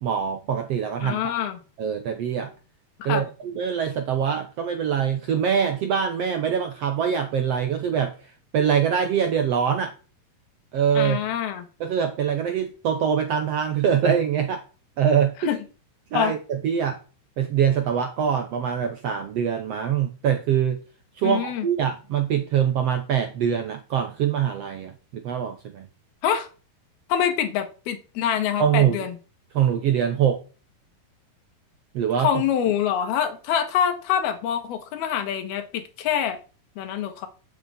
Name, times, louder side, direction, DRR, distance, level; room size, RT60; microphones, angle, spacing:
voice 1, 0.0-1.3 1.8-2.5 3.0-8.2 8.5-9.9 10.7-11.2 11.8-14.6 15.0-15.5 16.1-17.0 17.4-20.8 21.2-25.9 28.6-29.1 29.5-30.4 31.9-32.3, right 8 dB, 80° right, 7 dB, 1.4 m, -24 dB
voice 2, 1.0-1.6 3.0-3.2 11.0-11.7 15.5-15.6 16.1-16.4 21.2-21.7 26.2-26.5 27.1-29.2 32.2-36.4 36.8-37.3, left 9 dB, 85° left, 7 dB, 3.4 m, -25 dB
8.7 x 6.7 x 8.4 m, 0.36 s
omnidirectional pair, 4.3 m